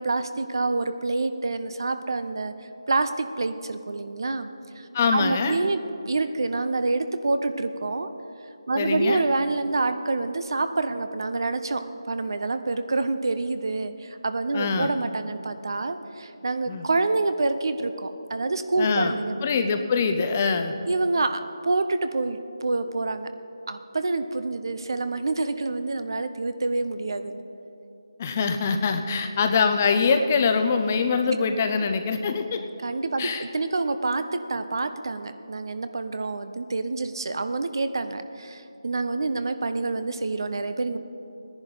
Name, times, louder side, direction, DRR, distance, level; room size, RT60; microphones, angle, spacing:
voice 1, 0.0-2.5 2.9-4.5 4.8-5.8 6.1-8.1 8.7-19.4 20.9-23.3 23.7-27.4 32.8-41.0, right 3 dB, 55° right, 10 dB, 0.7 m, -27 dB
voice 2, 4.9-5.6 8.7-9.2 14.5-14.9 16.7-16.8 18.8-19.1 19.4-20.7 28.2-32.7 33.2-33.4, left 5 dB, 25° left, 7 dB, 0.6 m, -23 dB
18.0 x 10.5 x 4.0 m, 2.9 s
figure-of-eight pair, 160°, 3 cm